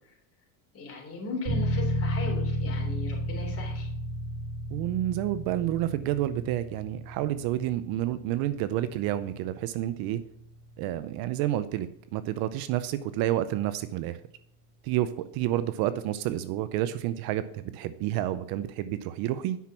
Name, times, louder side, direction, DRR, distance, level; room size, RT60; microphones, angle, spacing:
voice 1, 0.7-3.9, left 3 dB, 30° left, -1 dB, 3.7 m, -37 dB
sound 1, 1.5-12.0, equal, 75° right, 3.6 m, -33 dB
voice 2, 4.7-10.2 10.8-14.2 14.8-19.6, right 13 dB, 55° right, 13 dB, 0.6 m, -29 dB
9.3 x 6.1 x 5.8 m, 0.71 s
cardioid pair, 140°, 44 cm